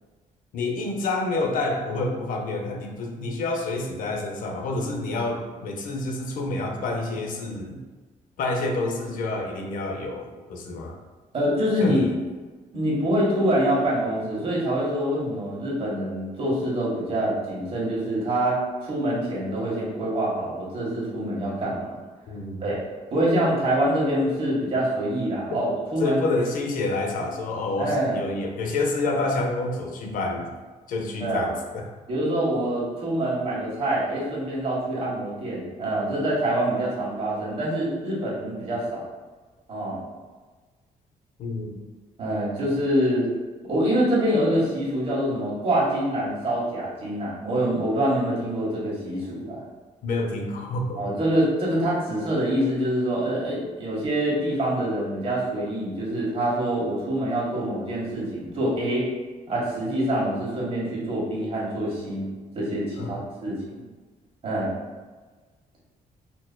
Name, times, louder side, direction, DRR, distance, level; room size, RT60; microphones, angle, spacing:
voice 1, 0.5-7.8 8.4-11.0 11.8-12.2 22.3-22.7 25.5-25.6 26.0-30.5 30.9-31.8 41.4-41.8 50.0-51.0 63.0-63.2, left 2 dB, 75° left, 2 dB, 0.6 m, -28 dB
voice 2, 11.3-12.0 12.7-22.0 22.6-22.8 23.1-26.2 27.8-28.2 31.2-31.5 32.1-39.1 39.7-40.0 42.2-43.3 43.7-49.6 51.0-59.1 59.5-62.3 62.5-63.8 64.4-64.7, right 1 dB, 45° right, -7 dB, 1.4 m, -25 dB
4.3 x 2.7 x 2.2 m, 1.3 s
cardioid pair, 125°, 14 cm